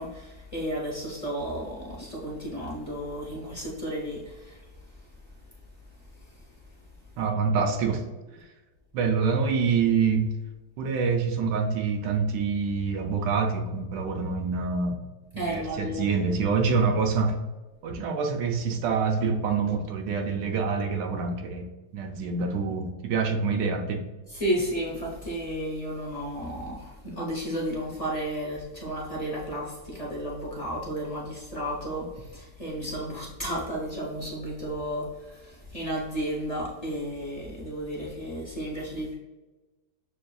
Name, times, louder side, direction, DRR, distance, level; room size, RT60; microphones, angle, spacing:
voice 1, 0.0-4.6 15.4-16.1 24.3-39.1, equal, 40° left, -5 dB, 0.5 m, -33 dB
voice 2, 7.2-8.0 8.9-10.3 10.8-15.0 15.3-17.4 17.8-21.7 21.9-24.0, right 5 dB, 85° right, 4 dB, 1.2 m, -26 dB
6.5 x 2.4 x 2.2 m, 1.2 s
omnidirectional pair, 1.8 m